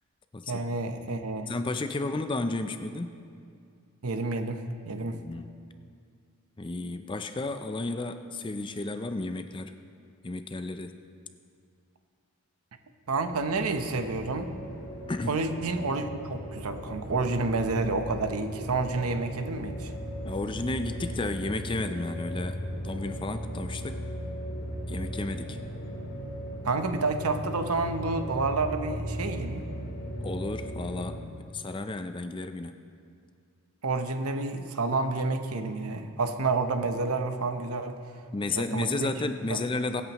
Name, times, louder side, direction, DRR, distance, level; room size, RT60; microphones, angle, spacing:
voice 1, 0.5-1.5 4.0-5.2 13.1-14.5 15.3-19.9 26.6-29.7 33.8-38.0 38.5-39.1 39.5-39.6, right 3 dB, 80° right, 7 dB, 0.8 m, -29 dB
voice 2, 1.5-3.2 5.1-5.5 6.6-9.7 10.2-10.9 15.1-15.4 20.2-24.0 24.9-25.6 30.2-31.2 31.5-32.8 38.3-40.0, left 2 dB, 20° left, 8 dB, 0.4 m, -32 dB
sound 1, 13.1-31.2, equal, 55° left, 3.4 m, -37 dB
23.5 x 8.4 x 3.0 m, 2.3 s
head